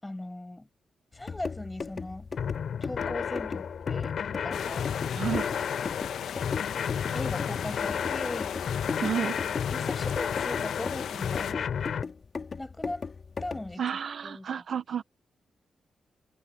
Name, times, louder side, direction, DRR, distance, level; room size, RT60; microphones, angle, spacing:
voice 1, 0.0-0.7 1.1-2.3 2.8-4.2 4.4-4.9 7.1-8.5 9.6-11.8 12.6-13.0 13.4-13.8 14.2-14.5, left 1 dB, 10° left, 7.1 m, -39 dB
sound 1, 1.1-13.7, left 5 dB, 40° left, 2.1 m, -38 dB
sound 2, 2.4-12.0, left 7 dB, 65° left, 6.1 m, -32 dB
sound 3, 4.5-11.5, left 9 dB, 90° left, 1.3 m, -37 dB
voice 2, 5.1-5.5 9.0-9.4 13.8-15.0, right 8 dB, 60° right, 0.9 m, -31 dB
cardioid pair, 120°, 0 cm